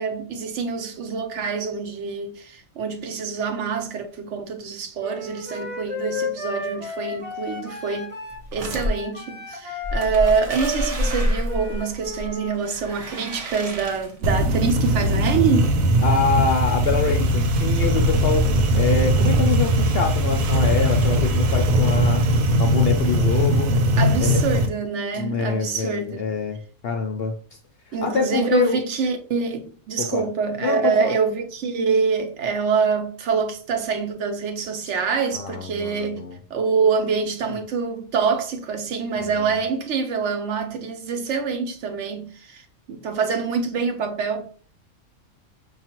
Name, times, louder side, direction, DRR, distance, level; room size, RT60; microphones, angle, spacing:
voice 1, 0.0-8.1 8.5-15.7 24.0-26.2 27.9-36.2 36.5-44.5, right 5 dB, 65° right, 0.8 m, -25 dB
Wind instrument woodwind instrument, 5.0-12.5, left 2 dB, 10° right, 0.9 m, -33 dB
sound 1, 8.3-8.9 9.8-14.4, equal, 45° right, 0.5 m, -28 dB
sound 2, 14.2-24.7, equal, 85° right, 1.1 m, -20 dB
voice 2, 16.0-18.4 18.7-22.2 22.6-23.7 24.2-24.4 25.1-26.6 26.8-27.6 28.0-28.8 30.0-30.2 30.6-31.1 35.3-36.4 37.5-37.6 39.2-39.6, left 5 dB, 65° left, 0.6 m, -25 dB
5.4 x 2.4 x 2.8 m
omnidirectional pair, 1.4 m